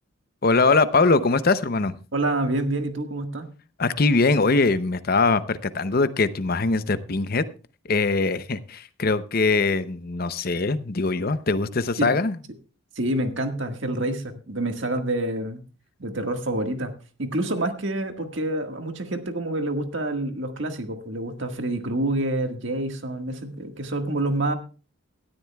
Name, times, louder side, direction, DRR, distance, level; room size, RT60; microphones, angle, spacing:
voice 1, 0.4-2.0 3.8-7.4 7.9-12.4, left 3 dB, 45° left, 13 dB, 0.7 m, -22 dB
voice 2, 2.1-3.5 12.0-12.2 12.9-15.6 16.0-16.9 17.2-24.5, right 1 dB, 60° right, 6 dB, 1.7 m, -27 dB
17.5 x 12.5 x 2.3 m, 0.34 s
head